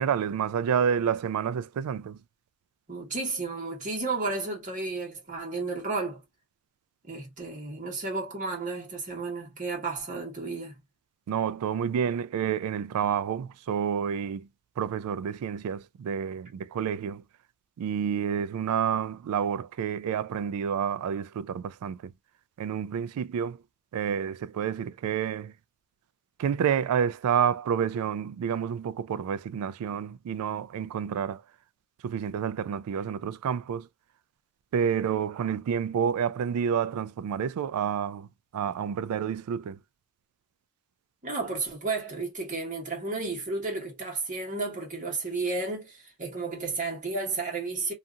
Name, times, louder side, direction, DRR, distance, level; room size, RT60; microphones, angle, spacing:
voice 1, 0.0-2.2 11.3-14.5 14.8-17.2 17.8-22.1 22.6-23.6 23.9-25.5 26.4-31.4 32.0-33.9 34.7-38.3 38.5-39.8, right 8 dB, 75° right, 0.3 m, -29 dB
voice 2, 2.9-6.2 7.1-10.8 41.2-47.9, right 3 dB, 35° right, 1.2 m, -32 dB
2.7 x 2.4 x 2.3 m
head